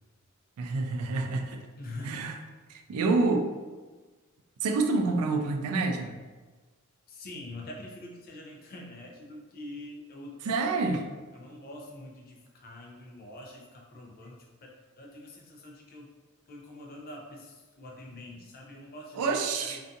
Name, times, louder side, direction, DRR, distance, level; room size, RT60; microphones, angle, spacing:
voice 1, 0.6-1.6 2.0-2.4 2.7-3.5 4.6-6.2 10.5-11.0 19.2-19.8, right 3 dB, 90° right, 5 dB, 0.3 m, -27 dB
voice 2, 1.8-2.2 7.1-10.5 11.3-16.1 16.5-19.8, left 1 dB, 40° left, 0 dB, 0.5 m, -45 dB
2.5 x 2.3 x 2.5 m, 1.3 s
head